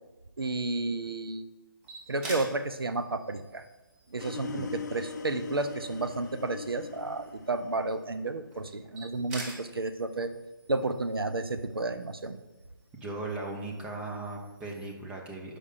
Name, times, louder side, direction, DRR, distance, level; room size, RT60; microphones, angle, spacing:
voice 1, 0.4-1.5 2.1-3.6 4.1-10.3 10.7-12.4, right 2 dB, 90° right, 10 dB, 0.6 m, -32 dB
sound 1, 1.8-15.0, right 2 dB, 25° right, 1.2 m, -49 dB
sound 2, 4.2-8.3, left 5 dB, 50° left, 0.5 m, -41 dB
voice 2, 12.9-15.6, right 2 dB, 10° right, -1 dB, 0.6 m, -38 dB
5.1 x 4.9 x 5.6 m, 1.1 s
figure-of-eight pair, 150°, 12 cm